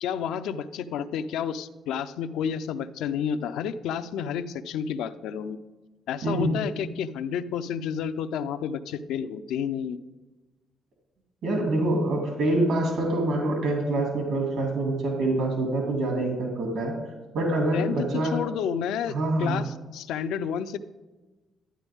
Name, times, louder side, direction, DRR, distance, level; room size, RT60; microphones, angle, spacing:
voice 1, 0.0-5.6 6.1-10.0 17.7-19.1 19.4-20.8, left 8 dB, 85° left, 10 dB, 0.5 m, -30 dB
voice 2, 6.2-6.6 11.4-16.9 17.3-18.4 19.1-19.6, right 1 dB, 80° right, 0 dB, 2.4 m, -25 dB
11.5 x 9.9 x 3.5 m, 1.2 s
cardioid pair, 90°, 0 cm